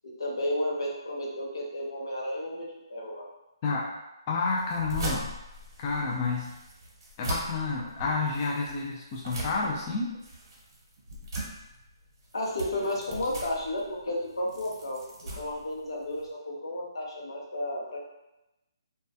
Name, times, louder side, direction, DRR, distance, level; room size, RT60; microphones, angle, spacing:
voice 1, 0.0-3.2 12.3-15.0 15.4-18.0, left 1 dB, 85° left, -3 dB, 0.8 m, -32 dB
voice 2, 4.3-5.3 5.8-6.5 7.2-10.1, left 4 dB, 30° left, -3 dB, 0.4 m, -29 dB
sound 1, 4.6-16.3, right 1 dB, 55° right, 0.8 m, -40 dB
2.2 x 2.2 x 2.6 m, 0.94 s
hypercardioid pair, 155°, 2 cm